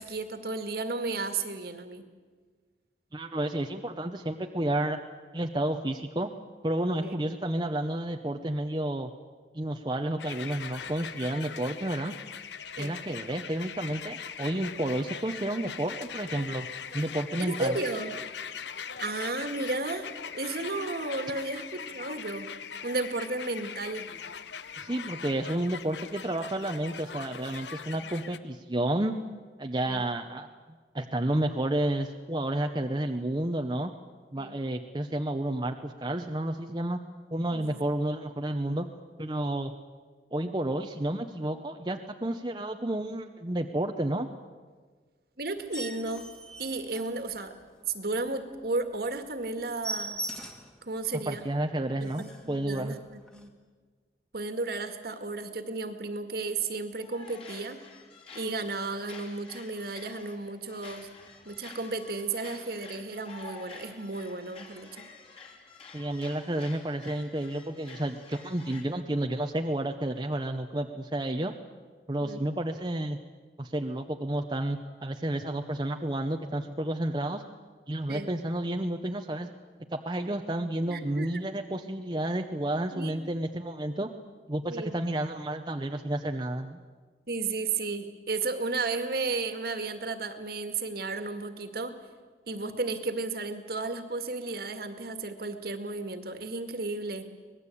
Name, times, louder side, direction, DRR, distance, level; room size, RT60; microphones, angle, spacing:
voice 1, 0.0-2.1 7.0-7.2 12.8-12.9 17.4-18.1 19.0-22.5 22.8-24.1 27.9-28.1 29.9-30.0 34.4-34.6 37.5-37.8 45.4-46.3 46.6-47.6 47.9-50.2 50.8-51.5 52.0-53.5 54.3-57.8 58.3-61.1 61.5-65.1 72.2-72.4 78.1-78.3 80.9-81.5 82.9-83.1 84.7-84.9 87.3-92.0 92.5-97.3, right 3 dB, 60° right, 8 dB, 2.0 m, -33 dB
voice 2, 3.1-5.0 5.3-6.3 6.6-9.1 9.5-12.1 12.8-16.7 16.9-17.8 24.8-29.2 29.6-30.5 30.9-33.9 34.3-37.0 37.3-38.9 39.2-39.7 40.3-44.3 51.3-53.0 65.9-71.5 72.1-73.2 73.6-77.4 77.9-79.5 79.9-84.1 84.5-86.8, right 1 dB, 25° right, 4 dB, 0.9 m, -31 dB
sound 1, 10.2-28.4, left 7 dB, 80° left, 0.9 m, -41 dB
sound 2, 45.6-47.7 48.1-48.3 48.6-48.7 49.0-49.2 49.4-50.8 51.2-51.3 51.7-51.8 52.0-52.5 53.3-53.4, right 1 dB, 5° left, 2.0 m, -40 dB
sound 3, 56.9-68.8, left 4 dB, 35° left, 3.7 m, -49 dB
25.0 x 19.5 x 8.5 m, 1.5 s
head